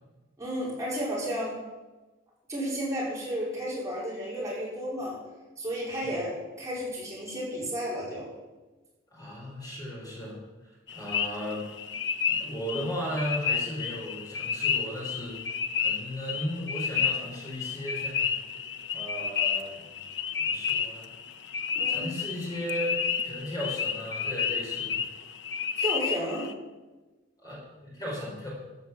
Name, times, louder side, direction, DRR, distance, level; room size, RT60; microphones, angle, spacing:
voice 1, 0.4-1.6 2.5-5.2 5.6-8.3 21.8-22.1 25.8-26.5, equal, 15° right, -6 dB, 4.4 m, -32 dB
voice 2, 9.1-10.4 10.9-11.6 12.4-15.4 15.8-18.6 18.9-19.8 20.3-21.1 21.8-23.0 23.2-25.0 27.4-28.5, equal, 20° left, -4 dB, 4.9 m, -36 dB
sound 1, 10.9-26.5, left 7 dB, 65° left, 0.8 m, -31 dB
14.0 x 9.0 x 7.3 m, 1.2 s
head